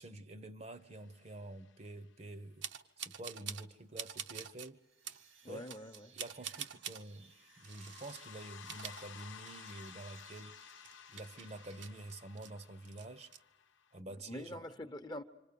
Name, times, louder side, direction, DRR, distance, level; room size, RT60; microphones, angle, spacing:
voice 1, 0.0-2.6 3.0-4.8 5.5-5.7 6.1-10.6 11.1-13.3 13.9-14.6, right 2 dB, 35° right, 0.8 m, -48 dB
sound 1, 0.9-2.0 7.2-14.0, left 8 dB, 75° left, 0.9 m, -55 dB
sound 2, 2.6-3.7 4.0-4.7 5.0-5.2 5.7-7.0 7.6-8.3 8.6-9.8 10.1-10.2 10.6-12.5 12.8-13.4, right 9 dB, 70° right, 0.9 m, -46 dB
sound 3, 4.7-12.1, right 5 dB, 85° right, 2.1 m, -63 dB
voice 2, 5.4-6.1 14.3-15.2, left 1 dB, 20° left, 0.9 m, -45 dB
27.0 x 26.0 x 6.9 m
head